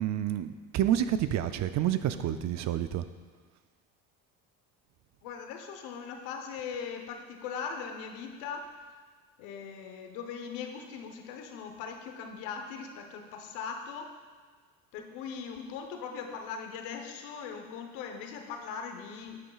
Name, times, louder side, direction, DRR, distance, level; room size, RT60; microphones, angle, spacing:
voice 1, 0.0-3.1, right 11 dB, 45° right, 11 dB, 0.5 m, -29 dB
voice 2, 5.2-8.8 9.4-14.2 14.9-19.4, left 6 dB, 85° left, 4 dB, 1.1 m, -40 dB
9.8 x 8.3 x 2.4 m, 1.5 s
supercardioid pair, 95°, 39 cm